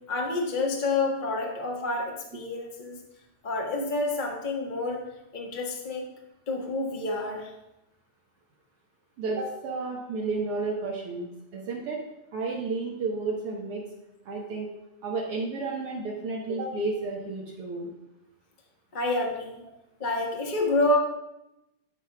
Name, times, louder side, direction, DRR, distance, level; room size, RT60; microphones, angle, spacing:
voice 1, 0.0-3.0 3.4-5.0 5.3-6.0 6.5-7.5 18.9-19.6 20.0-21.0, left 2 dB, 40° left, 0 dB, 0.6 m, -28 dB
voice 2, 9.2-12.0 12.3-13.8 14.3-14.7 15.0-17.9, right 3 dB, 60° right, -2 dB, 1.9 m, -32 dB
11.5 x 4.4 x 5.8 m, 0.89 s
omnidirectional pair, 3.3 m